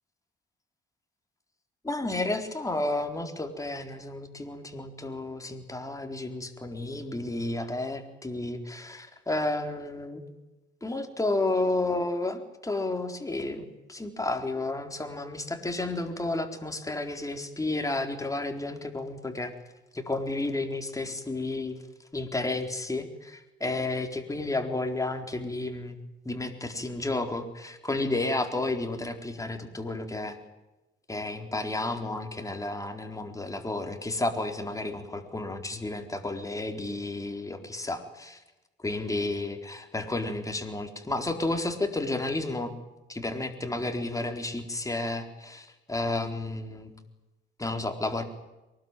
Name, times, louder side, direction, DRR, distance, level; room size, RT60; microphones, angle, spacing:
voice 1, 1.9-10.2 10.8-19.5 19.9-21.8 22.1-26.0 26.2-30.4 31.1-38.4 38.8-42.7 43.1-46.9 47.6-48.2, left 2 dB, 15° left, 5 dB, 4.2 m, -32 dB
23.5 x 20.0 x 9.3 m, 1.0 s
cardioid pair, 90°, 20 cm